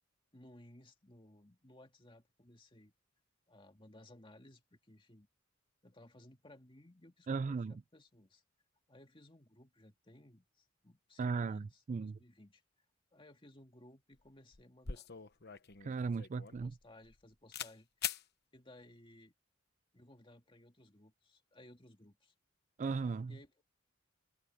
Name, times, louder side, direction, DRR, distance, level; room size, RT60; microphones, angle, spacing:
voice 1, 0.3-2.9 3.5-5.3 5.8-8.4 8.9-12.6 13.1-15.1 16.6-17.9 18.5-19.3 19.9-22.3 23.3-23.6, left 1 dB, 25° left, 2.1 m, -60 dB
voice 2, 7.3-7.7 11.2-12.2 15.8-16.7 22.8-23.3, right 4 dB, 35° right, 0.3 m, -36 dB
sound 1, 14.1-14.3 14.5-17.2 17.5-17.7 18.0-18.2, left 9 dB, 55° left, 1.1 m, -42 dB
head